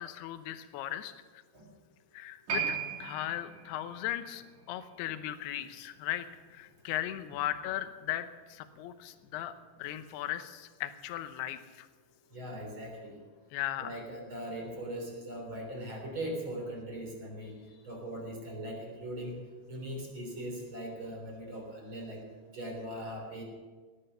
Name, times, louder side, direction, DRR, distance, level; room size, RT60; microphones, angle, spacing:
voice 1, 0.0-1.4 2.1-9.5 9.8-11.9 13.5-14.0, left 13 dB, 75° left, 10 dB, 2.8 m, -37 dB
Piano, 2.5-9.4 9.7-9.8, right 6 dB, 75° right, 5.8 m, -41 dB
voice 2, 12.3-13.2 13.8-17.6 17.8-19.3 19.7-22.2 22.5-23.4, right 1 dB, 30° right, 0 dB, 3.8 m, -40 dB
18.0 x 11.0 x 6.7 m, 1.4 s
omnidirectional pair, 4.9 m